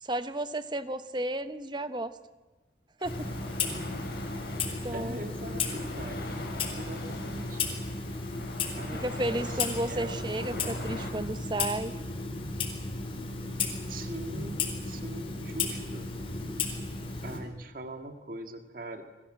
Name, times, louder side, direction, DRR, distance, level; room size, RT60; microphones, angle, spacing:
voice 1, 0.0-2.2 3.0-3.3 4.8-5.2 9.0-11.9, right 1 dB, 25° right, 11 dB, 1.0 m, -33 dB
sound 1, 3.0-11.1, left 2 dB, 55° left, 4.6 m, -43 dB
Clock, 3.0-17.4, left 3 dB, 30° left, 4.2 m, -34 dB
voice 2, 4.9-6.3 6.7-7.8 8.8-11.3 13.9-16.1 17.2-19.0, right 1 dB, 50° right, 6 dB, 2.0 m, -42 dB
29.0 x 21.5 x 7.6 m, 1.2 s
head